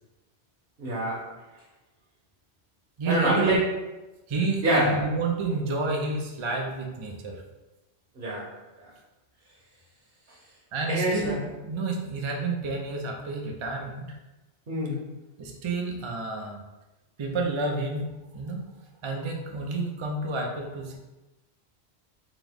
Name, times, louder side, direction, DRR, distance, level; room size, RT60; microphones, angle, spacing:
voice 1, 0.8-1.3 3.1-3.7 4.6-5.0 8.2-8.5 10.9-11.4 14.7-15.0, right 1 dB, 60° right, -6 dB, 1.2 m, -25 dB
voice 2, 3.0-3.6 4.3-7.4 10.7-14.2 15.4-16.6 17.2-18.6 19.0-21.0, right 3 dB, 45° right, 1 dB, 0.4 m, -30 dB
3.7 x 3.0 x 3.4 m, 1.1 s
omnidirectional pair, 1.1 m